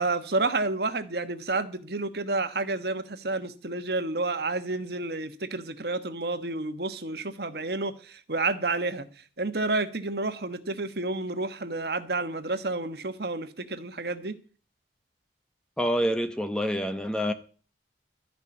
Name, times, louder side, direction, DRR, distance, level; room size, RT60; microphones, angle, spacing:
voice 1, 0.0-9.1 9.4-14.4, right 3 dB, 60° right, 1.3 m, -30 dB
voice 2, 15.8-17.3, equal, 5° left, 0.8 m, -27 dB
14.0 x 5.7 x 9.5 m
head